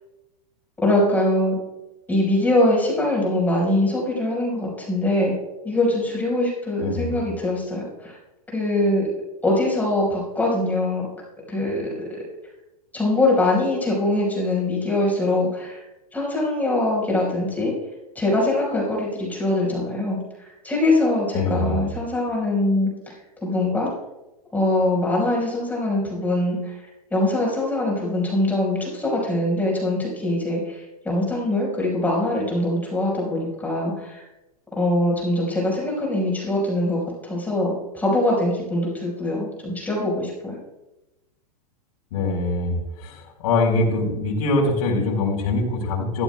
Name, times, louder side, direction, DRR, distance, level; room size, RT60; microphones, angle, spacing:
voice 1, 0.8-1.6 2.1-5.4 5.6-8.2 8.5-9.1 9.4-11.0 11.5-12.0 12.9-15.8 16.1-17.7 18.1-20.2 20.6-22.9 23.4-23.9 24.5-26.8 27.1-34.2 34.7-40.6, left 1 dB, 10° left, -3 dB, 4.6 m, -23 dB
voice 2, 6.8-7.2 21.3-21.8 42.1-46.2, left 2 dB, 65° left, -2 dB, 4.1 m, -23 dB
16.0 x 13.5 x 2.3 m, 0.97 s
hypercardioid pair, 130°, 21 cm